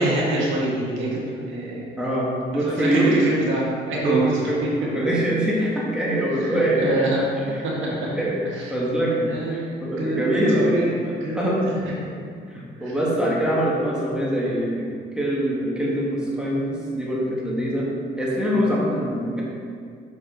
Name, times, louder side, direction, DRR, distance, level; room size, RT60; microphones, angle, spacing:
voice 1, 0.0-1.8 2.6-4.3 6.3-7.2 8.5-8.7 9.2-10.9 11.2-11.6 12.8-12.9, right 2 dB, 80° right, -5 dB, 1.6 m, -25 dB
voice 2, 2.0-3.1 3.9-4.2 4.4-6.9 7.4-10.7 11.0-11.6 12.5-14.8 15.1-17.9 18.2-19.4, equal, 5° right, -6 dB, 1.6 m, -24 dB
6.1 x 5.1 x 3.9 m, 2.2 s
cardioid pair, 90°, 20 cm